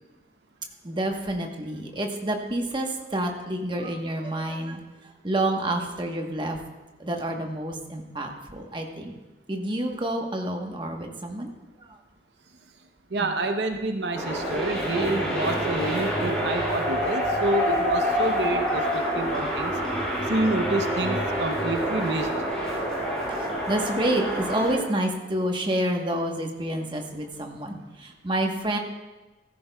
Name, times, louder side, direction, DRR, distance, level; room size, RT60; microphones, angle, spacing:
voice 1, 0.8-6.6 7.0-9.1 9.5-11.5 11.8-11.9 13.2-13.3 23.3-28.8, right 1 dB, 25° right, 2 dB, 1.1 m, -29 dB
voice 2, 13.1-19.8 20.2-22.4, right 2 dB, 70° right, 6 dB, 0.7 m, -28 dB
sound 1, 14.1-24.7, equal, 5° left, 4.3 m, -27 dB
15.5 x 14.0 x 2.3 m, 1.1 s
head